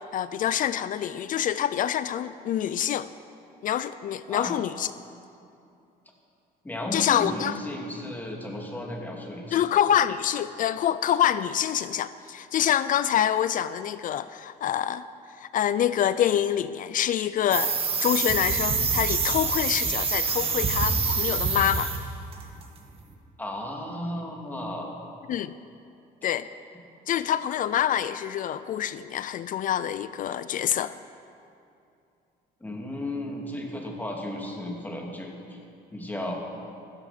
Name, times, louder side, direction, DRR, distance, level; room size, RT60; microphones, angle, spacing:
voice 1, 0.1-3.1 3.6-4.9 6.9-7.5 9.5-15.0 15.4-17.7 18.0-21.9 25.3-25.5 26.2-26.5 27.1-31.0, left 10 dB, 50° left, 15 dB, 0.4 m, -26 dB
voice 2, 6.6-9.7 23.4-24.9 32.6-35.6 35.9-36.3, left 1 dB, 10° left, 0 dB, 2.5 m, -34 dB
sound 1, 17.5-22.1 22.3-22.6, right 5 dB, 35° right, 1.9 m, -26 dB
14.5 x 13.5 x 5.8 m, 2.6 s
cardioid pair, 110°, 17 cm